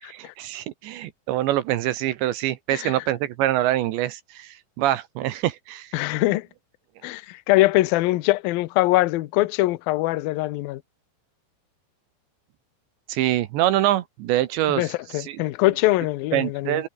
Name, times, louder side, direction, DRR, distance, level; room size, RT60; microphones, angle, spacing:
voice 1, 0.0-6.0 13.1-15.4 16.3-16.9, right 14 dB, 75° right, 3.2 m, -25 dB
voice 2, 5.9-6.5 7.0-10.8 14.8-16.8, left 18 dB, 85° left, 2.1 m, -22 dB
omnidirectional pair, 5.4 m